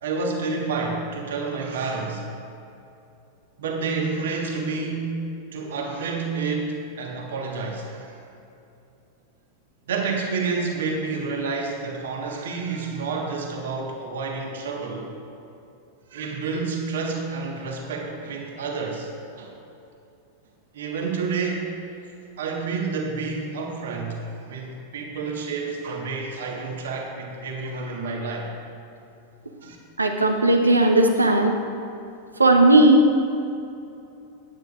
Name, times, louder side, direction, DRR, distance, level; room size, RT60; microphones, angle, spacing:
voice 1, 0.0-2.3 3.6-8.2 9.9-15.1 16.1-19.1 19.4-19.5 20.7-21.8 22.4-28.5 29.6-29.8, right 4 dB, 60° right, 0 dB, 1.5 m, -29 dB
voice 2, 30.0-31.5 32.4-33.0, right 2 dB, 80° right, 4 dB, 1.0 m, -16 dB
17.0 x 9.4 x 2.5 m, 2.7 s
figure-of-eight pair, 90°, 0 cm